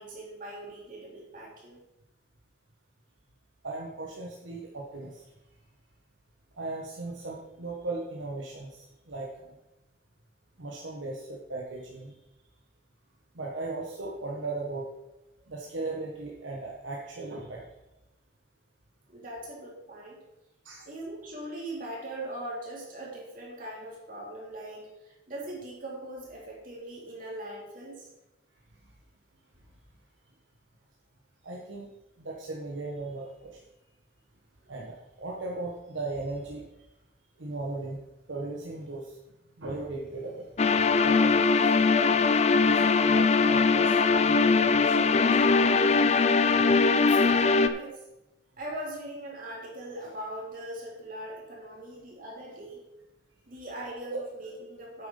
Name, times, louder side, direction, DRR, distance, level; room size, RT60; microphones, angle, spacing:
voice 1, 0.0-1.8 19.1-20.2 20.9-28.1 46.9-48.0 48.6-52.8 53.5-55.1, right 1 dB, 45° right, -4 dB, 3.1 m, -40 dB
voice 2, 3.6-5.2 6.6-9.5 10.6-12.1 13.3-14.9 15.5-17.6 20.6-20.8 31.4-31.9 32.2-33.6 34.7-36.6 37.4-38.0 38.3-39.2 39.6-40.5 41.0-41.6 42.6-45.5 54.0-54.2, right 2 dB, 80° right, -2 dB, 1.3 m, -37 dB
sound 1, 40.6-47.7, left 4 dB, 35° left, 0.4 m, -21 dB
8.7 x 7.8 x 5.5 m, 0.96 s
head